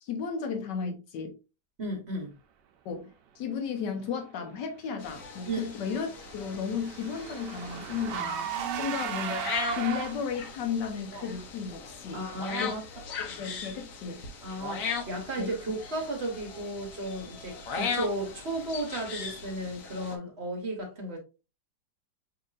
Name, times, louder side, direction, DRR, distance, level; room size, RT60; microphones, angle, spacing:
voice 1, 0.0-1.3 2.8-3.1 3.3-8.5 8.8-12.2 12.6-12.7 13.4-14.2 15.4-15.6, left 6 dB, 90° left, 1.5 m, -34 dB
voice 2, 1.8-2.3 5.4-5.7 8.1-9.0 11.1-11.3 12.1-12.8 13.3-13.4 14.4-21.2, right 1 dB, 40° right, 1.3 m, -35 dB
sound 1, 5.0-20.2, left 5 dB, 60° left, 1.1 m, -39 dB
Car / Engine, 5.4-10.5, right 8 dB, 90° right, 1.2 m, -36 dB
6.3 x 2.8 x 2.4 m
omnidirectional pair, 1.8 m